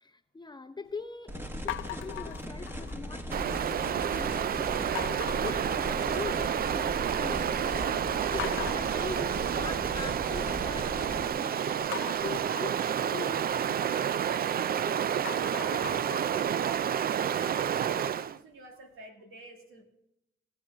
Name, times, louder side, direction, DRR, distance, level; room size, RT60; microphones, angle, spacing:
voice 1, 0.0-14.2, left 4 dB, 20° left, 8 dB, 0.7 m, -42 dB
sound 1, 1.3-11.3, equal, 10° right, 1.3 m, -39 dB
sound 2, 1.7-3.2 3.5-4.1 5.0-6.5 6.8-7.4 7.7-7.8 8.4-10.5 11.9-14.7 15.1-18.0, left 13 dB, 75° left, 0.5 m, -42 dB
Stream, 3.3-18.4, right 9 dB, 45° right, 0.4 m, -30 dB
voice 2, 17.3-19.8, right 2 dB, 90° right, 1 dB, 2.1 m, -48 dB
17.0 x 8.4 x 3.5 m, 0.86 s
cardioid pair, 80°, 21 cm